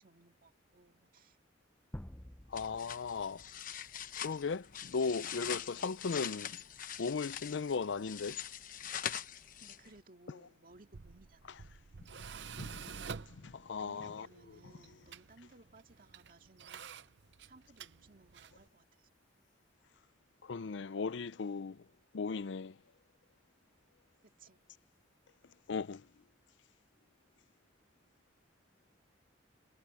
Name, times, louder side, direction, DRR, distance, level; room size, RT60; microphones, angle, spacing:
voice 1, 0.0-1.4 9.6-11.6 13.8-16.9 17.4-19.1 24.2-24.6, right 2 dB, 45° right, 2.2 m, -61 dB
sound 1, 1.9-3.9, left 1 dB, 5° left, 0.5 m, -50 dB
voice 2, 2.5-3.4 4.2-6.6 7.0-8.4 12.6-12.9 13.3-14.3 20.4-21.8 22.1-22.8 25.7-26.1, left 5 dB, 70° left, 0.5 m, -37 dB
sound 2, 2.5-10.0, left 9 dB, 45° left, 1.0 m, -43 dB
Tools, 10.7-18.7, right 5 dB, 65° right, 0.7 m, -49 dB
head